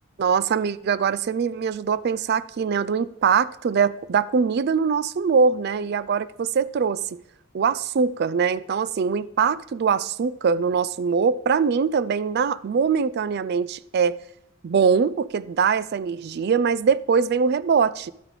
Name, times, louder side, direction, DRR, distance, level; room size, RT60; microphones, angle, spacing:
voice 1, 0.2-7.2 7.5-14.2 14.6-18.1, right 6 dB, 50° right, 0.3 m, -22 dB
11.5 x 8.7 x 3.2 m
head